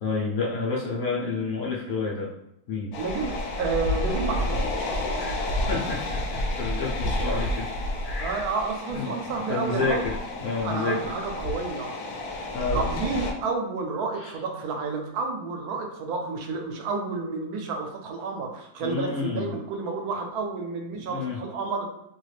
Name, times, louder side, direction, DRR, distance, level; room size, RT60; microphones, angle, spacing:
voice 1, 0.0-2.3 2.7-2.9 5.1-5.4 5.7-7.7 8.0-8.5 8.9-9.1 9.5-11.0 12.5-12.8 14.2-14.3 18.8-19.5 20.9-21.4, left 4 dB, 65° left, -3 dB, 0.9 m, -29 dB
sound 1, 2.9-13.3, left 1 dB, 80° left, 1.1 m, -30 dB
voice 2, 3.0-4.7 8.2-10.0 10.6-12.0 12.7-21.9, right 4 dB, 80° right, 2 dB, 1.1 m, -30 dB
2.8 x 2.4 x 3.1 m, 0.79 s
omnidirectional pair, 1.6 m